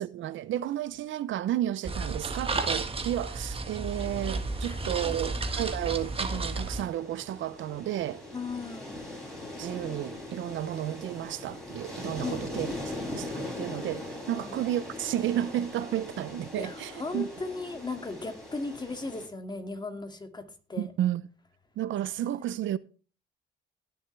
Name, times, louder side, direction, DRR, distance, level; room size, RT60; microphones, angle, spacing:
voice 1, 0.0-8.2 9.6-12.7 13.1-17.3 20.8-21.2 21.8-22.8, right 12 dB, 75° right, 0.7 m, -32 dB
sound 1, 1.8-6.8, right 3 dB, 30° right, 1.7 m, -32 dB
sound 2, 3.9-19.3, left 1 dB, ahead, 7.8 m, -41 dB
voice 2, 4.6-5.1 8.3-8.9 12.2-13.0 14.3-14.6 16.5-20.4 20.7-20.9 22.2-22.4, left 3 dB, 20° left, 2.3 m, -37 dB
18.5 x 7.1 x 3.4 m
cardioid pair, 90°, 20 cm